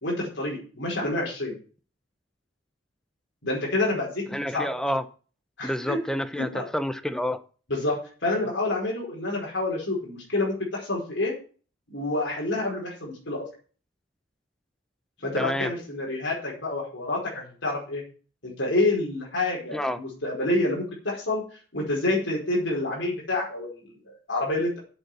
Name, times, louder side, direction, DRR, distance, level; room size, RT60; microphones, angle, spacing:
voice 1, 0.0-1.6 3.4-4.2 4.5-4.7 5.6-6.0 6.3-6.7 7.7-11.3 11.9-13.4 15.2-18.0 18.4-21.4 21.7-24.8, left 2 dB, 70° left, -4 dB, 4.9 m, -28 dB
voice 2, 4.3-5.0 5.6-7.4 15.4-15.7 19.7-20.0, equal, 5° left, 11 dB, 0.7 m, -28 dB
8.2 x 8.0 x 8.1 m, 0.40 s
head